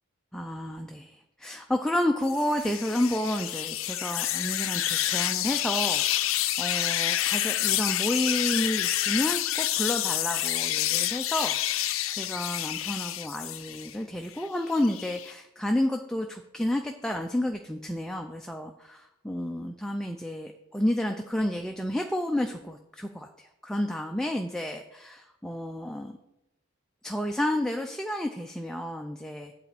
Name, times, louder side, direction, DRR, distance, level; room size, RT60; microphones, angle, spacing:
voice 1, 0.3-26.2 27.0-29.5, left 1 dB, 5° left, 3 dB, 0.4 m, -31 dB
sound 1, 2.3-13.9 14.3-15.3, left 13 dB, 90° left, 0.5 m, -28 dB
8.2 x 4.2 x 7.1 m, 0.87 s
head